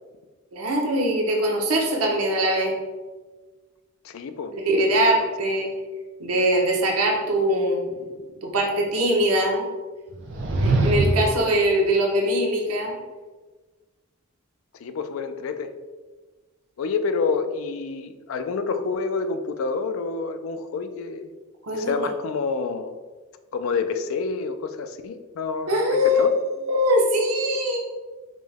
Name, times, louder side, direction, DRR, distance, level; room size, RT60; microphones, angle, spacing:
voice 1, 0.5-2.7 4.5-5.7 6.2-7.8 8.4-9.6 10.6-12.9 21.6-22.1 25.7-26.3 26.7-27.8, equal, 90° right, -1 dB, 0.9 m, -22 dB
voice 2, 4.0-4.6 8.0-8.1 14.8-15.7 16.8-21.3 21.7-23.0 23.5-26.4, left 4 dB, 70° left, 9 dB, 0.3 m, -28 dB
sound 1, 10.1-11.5, right 2 dB, 55° right, 0.5 m, -22 dB
5.2 x 2.1 x 3.4 m, 1.3 s
head